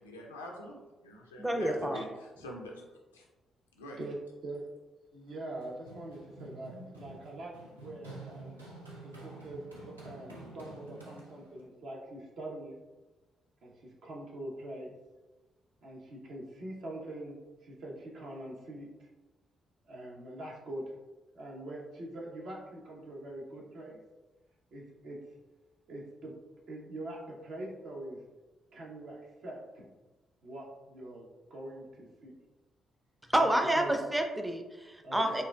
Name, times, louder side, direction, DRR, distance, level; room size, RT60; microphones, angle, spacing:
voice 1, 0.0-3.3 3.7-4.0, equal, 85° left, -1 dB, 0.4 m, -45 dB
voice 2, 1.4-2.1 33.3-35.4, right 1 dB, 10° right, 4 dB, 0.5 m, -29 dB
voice 3, 5.1-7.5 7.8-8.6 9.0-12.8 13.6-14.9 15.8-17.4 17.6-19.1 19.8-20.8 21.3-24.0 24.7-25.2 25.9-26.3 26.7-28.2 28.7-29.9 30.4-32.3 33.3-33.9 35.0-35.4, right 1 dB, 60° right, -2 dB, 0.8 m, -43 dB
Run, 5.3-11.7, right 2 dB, 90° right, 0.5 m, -49 dB
4.4 x 2.5 x 2.2 m, 1.2 s
figure-of-eight pair, 40°, 0 cm